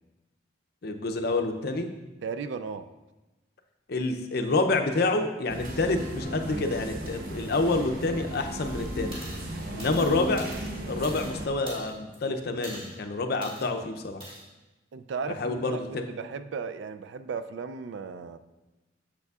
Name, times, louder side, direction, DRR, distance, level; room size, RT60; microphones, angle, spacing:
voice 1, 0.8-1.9 3.9-9.2 9.7-10.5 10.9-14.3 15.4-16.1, left 2 dB, 55° left, 5 dB, 0.5 m, -28 dB
voice 2, 2.2-2.9 14.9-15.8 16.1-18.4, right 5 dB, 65° right, 11 dB, 0.3 m, -35 dB
sound 1, 5.5-11.5, right 1 dB, 45° right, 0.7 m, -36 dB
sound 2, 9.1-9.5 9.8-11.3 11.7-12.2 12.6-12.9 13.4-13.6 14.2-14.4, right 1 dB, 25° right, 1.7 m, -43 dB
8.0 x 6.8 x 2.4 m, 1.1 s
head